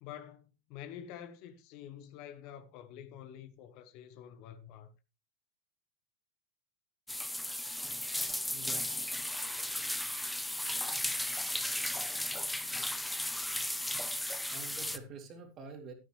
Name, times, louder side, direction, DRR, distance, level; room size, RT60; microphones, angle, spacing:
voice 1, 0.0-4.9, left 10 dB, 40° left, 1.3 m, -48 dB
sound 1, 7.1-15.0, left 1 dB, 5° left, 0.8 m, -35 dB
voice 2, 8.5-8.9 14.5-15.9, right 4 dB, 30° right, 3.0 m, -47 dB
13.0 x 10.5 x 3.2 m
figure-of-eight pair, 90°, 0 cm